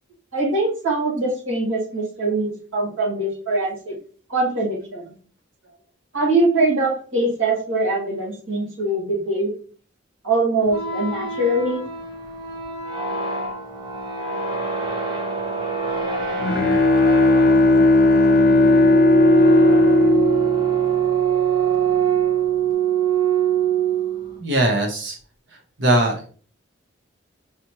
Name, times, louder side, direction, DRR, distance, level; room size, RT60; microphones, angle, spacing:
voice 1, 0.3-3.9 4.3-5.1 6.1-9.5 10.2-11.8, right 2 dB, 85° right, -2 dB, 2.3 m, -22 dB
sound 1, 10.6-24.4, right 8 dB, 25° right, 0.6 m, -24 dB
Bowed string instrument, 16.1-21.5, left 2 dB, 45° left, 0.5 m, -16 dB
voice 2, 24.4-25.2 25.8-26.3, right 1 dB, 60° right, 3 dB, 1.0 m, -20 dB
5.0 x 3.0 x 2.9 m, 0.41 s
head